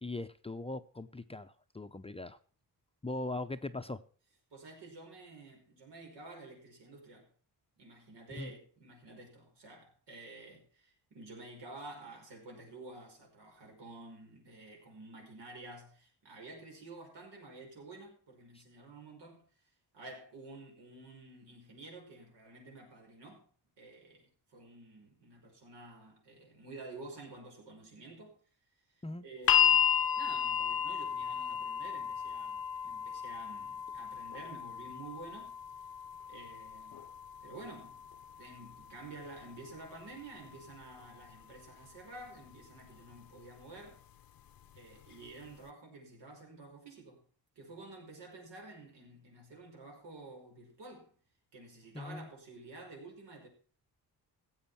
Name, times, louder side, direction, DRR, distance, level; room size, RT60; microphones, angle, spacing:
voice 1, 0.0-2.4 3.0-4.0 8.3-8.5 18.5-18.6 29.0-29.2 51.9-52.3, left 2 dB, 15° left, 0.5 m, -40 dB
voice 2, 4.5-7.3 7.8-19.5 19.9-23.5 23.8-28.4 28.9-35.6 36.3-37.1 37.4-38.0 38.4-44.0 44.7-47.2 47.6-51.1 51.5-53.5, right 2 dB, 85° right, 5.5 m, -50 dB
sound 1, 29.5-41.6 42.6-42.7, left 8 dB, 55° left, 0.6 m, -34 dB
16.0 x 7.9 x 5.7 m
cardioid pair, 120°, 41 cm